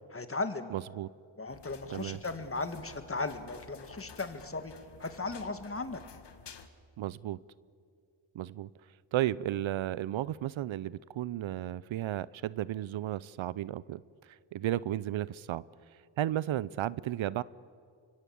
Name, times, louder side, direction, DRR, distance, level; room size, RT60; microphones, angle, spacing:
voice 1, 0.1-0.7 1.4-4.7 5.0-6.0, left 3 dB, 25° left, 9 dB, 2.1 m, -36 dB
voice 2, 0.7-1.1 1.9-2.2 7.0-7.4 8.3-8.7 9.1-14.0 14.5-15.6 16.2-17.4, right 13 dB, 70° right, 20 dB, 0.6 m, -33 dB
sound 1, 1.5-6.7, left 5 dB, 55° left, 1.7 m, -52 dB
25.0 x 22.5 x 8.5 m, 2.2 s
cardioid pair, 70°, 49 cm